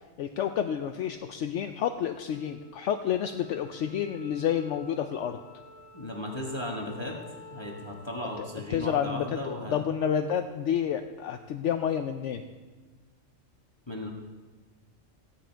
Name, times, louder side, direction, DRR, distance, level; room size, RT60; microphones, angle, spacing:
voice 1, 0.2-5.4 8.4-8.5 8.7-12.4, left 9 dB, 70° left, 7 dB, 0.9 m, -29 dB
Wind instrument woodwind instrument, 2.3-10.9, left 1 dB, 85° left, 2.3 m, -51 dB
voice 2, 5.9-7.2 7.5-9.8 13.9-14.1, left 1 dB, 20° left, -1 dB, 1.3 m, -36 dB
15.5 x 10.0 x 4.5 m, 1.3 s
omnidirectional pair, 1.3 m